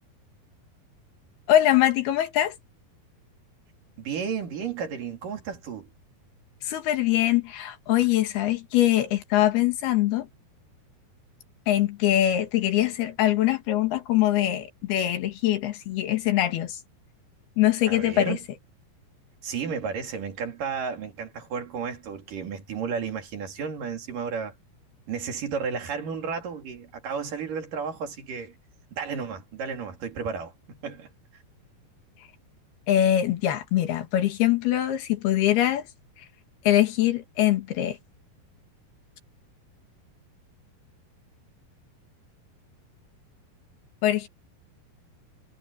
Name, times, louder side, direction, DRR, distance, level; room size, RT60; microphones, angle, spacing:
voice 1, 1.5-2.6 6.6-10.3 11.7-16.8 17.6-18.4 32.9-35.9 36.7-38.0 44.0-44.3, left 12 dB, 85° left, 3.9 m, -23 dB
voice 2, 4.0-5.9 17.9-18.4 19.4-24.5 25.1-28.6 28.9-31.1, right 6 dB, 60° right, 4.4 m, -33 dB
omnidirectional pair, 4.4 m